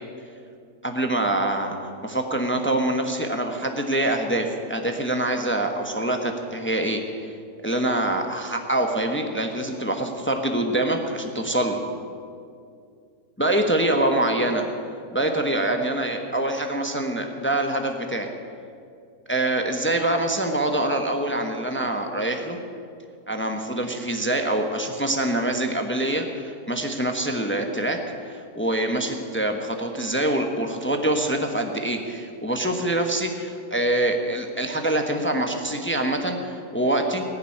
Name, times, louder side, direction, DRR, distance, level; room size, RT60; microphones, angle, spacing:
voice 1, 0.8-1.8 2.0-7.3 7.6-11.8 13.4-14.6 15.1-18.3 19.3-22.6 23.3-28.0 28.2-37.2, right 1 dB, 10° left, 4 dB, 1.0 m, -25 dB
20.0 x 7.0 x 9.9 m, 2.4 s
omnidirectional pair, 1.6 m